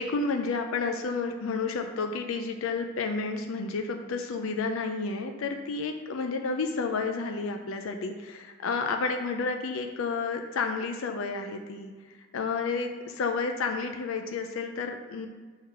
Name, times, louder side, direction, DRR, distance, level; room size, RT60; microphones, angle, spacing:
voice 1, 0.0-11.9 12.3-15.3, left 4 dB, 80° left, 5 dB, 0.4 m, -31 dB
4.6 x 3.8 x 5.6 m, 1.5 s
head